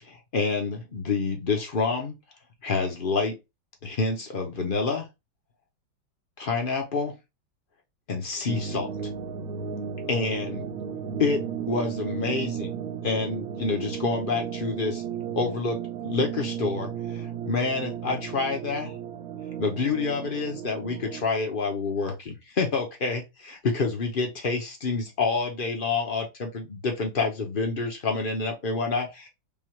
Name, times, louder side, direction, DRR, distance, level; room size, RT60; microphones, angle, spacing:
voice 1, 0.1-2.2 2.6-3.3 3.8-5.0 6.4-7.1 8.1-8.9 10.1-10.7 11.2-11.4 11.7-12.7 13.0-15.0 15.3-15.8 16.0-18.9 19.6-29.3, left 4 dB, 45° left, 0.7 m, -28 dB
sound 1, 8.5-21.2, right 8 dB, 60° right, 1.0 m, -34 dB
5.4 x 2.4 x 3.1 m
omnidirectional pair, 2.1 m